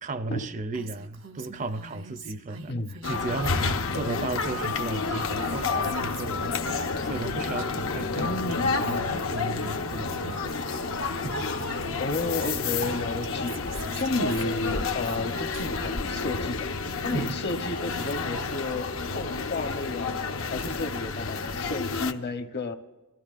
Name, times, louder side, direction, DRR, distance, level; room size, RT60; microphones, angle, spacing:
voice 1, 0.0-10.6 11.2-11.5 17.1-17.4, right 3 dB, 35° right, 0.4 m, -35 dB
Female speech woman speaking, 0.7-4.3 4.6-7.9 8.2-10.6 11.2-11.3 11.5-16.2 16.7-18.6, right 2 dB, 85° right, 1.5 m, -46 dB
voice 2, 2.7-3.0 8.1-8.6 12.0-16.7 17.0-18.9 19.1-20.2 20.5-22.8, left 2 dB, 55° left, 0.8 m, -32 dB
sound 1, 3.0-22.1, left 4 dB, 90° left, 0.8 m, -30 dB
24.5 x 14.0 x 2.5 m
head